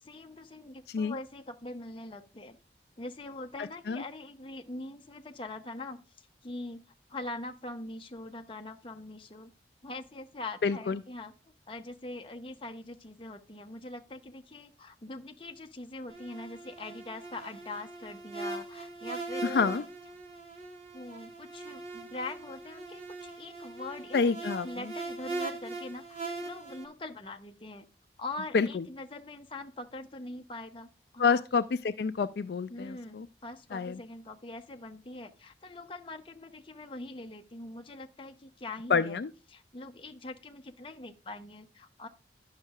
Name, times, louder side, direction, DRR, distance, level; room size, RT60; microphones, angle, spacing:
voice 1, 0.0-2.6 3.0-9.5 9.8-11.3 11.7-19.8 20.9-27.8 28.2-31.4 32.7-39.2 39.5-42.1, left 2 dB, 30° left, 0.7 m, -43 dB
voice 2, 10.6-11.0 19.4-19.8 24.1-24.7 28.5-28.8 31.2-33.3 33.7-34.0 38.9-39.3, left 5 dB, 65° left, 0.4 m, -28 dB
sound 1, 16.1-26.8, right 3 dB, 35° right, 1.2 m, -41 dB
10.5 x 6.4 x 2.3 m
head